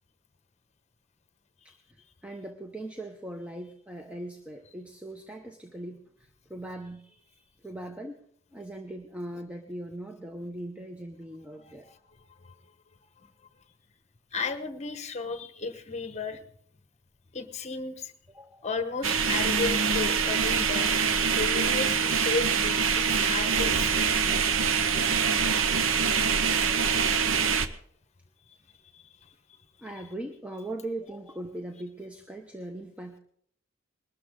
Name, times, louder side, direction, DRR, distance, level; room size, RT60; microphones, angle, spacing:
voice 1, 1.6-8.2 8.5-11.9 18.3-18.7 29.8-33.2, right 1 dB, 5° right, 4 dB, 0.8 m, -40 dB
voice 2, 11.6-12.0 12.4-12.5 13.2-13.3 14.3-16.4 17.3-18.1 18.6-20.9 21.3-24.6 24.9-26.2 28.5-28.6 28.9-29.6, left 4 dB, 35° left, 10 dB, 1.1 m, -35 dB
sound 1, 19.0-27.7, right 6 dB, 75° right, 0.8 m, -25 dB
20.5 x 13.0 x 3.7 m, 0.64 s
head